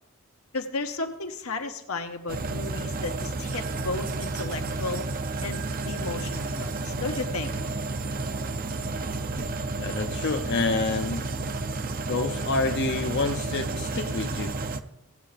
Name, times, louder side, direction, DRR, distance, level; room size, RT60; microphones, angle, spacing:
voice 1, 0.5-5.0 5.4-6.7 7.0-7.5, left 3 dB, 85° left, 5 dB, 1.2 m, -34 dB
sound 1, 2.3-14.8, right 3 dB, 40° right, 0.6 m, -31 dB
voice 2, 9.8-11.2 12.1-14.6, left 3 dB, 55° left, 5 dB, 0.7 m, -28 dB
17.5 x 8.3 x 3.4 m, 0.86 s
head